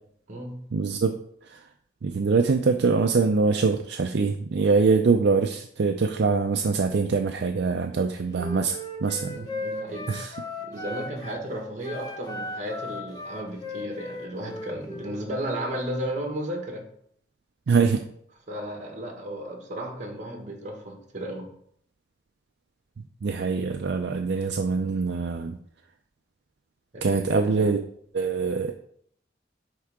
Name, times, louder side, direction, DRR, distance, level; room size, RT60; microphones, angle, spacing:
voice 1, 0.7-1.1 1.5-1.6 2.0-9.4 10.1-10.3 17.7-18.0 23.2-25.6 27.0-27.8 28.1-28.8, right 4 dB, 60° right, 5 dB, 0.4 m, -24 dB
Wind instrument woodwind instrument, 8.3-11.4 11.8-15.2, left 2 dB, 20° left, 0.9 m, -37 dB
voice 2, 9.3-10.2 10.6-16.8 18.5-21.5 26.9-27.7, right 1 dB, 40° right, 1 dB, 1.5 m, -34 dB
9.3 x 3.7 x 3.6 m, 0.66 s
head